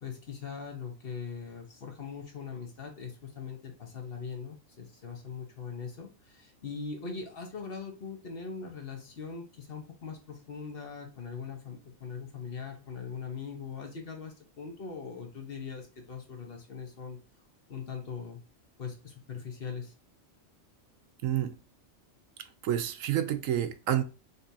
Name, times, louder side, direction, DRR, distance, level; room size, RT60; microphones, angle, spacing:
voice 1, 0.0-17.2 17.7-18.4 18.8-19.9, left 6 dB, 50° left, 1.0 m, -41 dB
voice 2, 21.2-21.5 22.6-24.0, right 11 dB, 75° right, 0.9 m, -29 dB
5.2 x 2.9 x 2.7 m
omnidirectional pair, 1.4 m